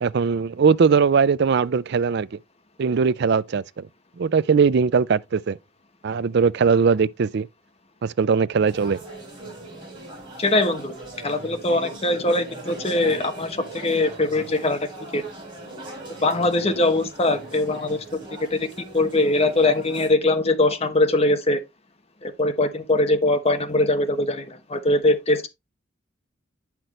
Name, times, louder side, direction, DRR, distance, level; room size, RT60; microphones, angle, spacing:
voice 1, 0.0-2.4 2.8-3.9 4.2-5.6 6.0-7.5 8.0-9.0, right 5 dB, 55° right, 0.4 m, -20 dB
sound 1, 8.7-20.1, right 2 dB, 25° right, 3.8 m, -40 dB
voice 2, 10.4-10.9 11.2-14.8 15.1-15.2 16.2-18.0 18.5-18.7 18.9-21.6 22.2-25.5, left 2 dB, 30° left, 1.0 m, -21 dB
9.1 x 5.9 x 3.1 m
head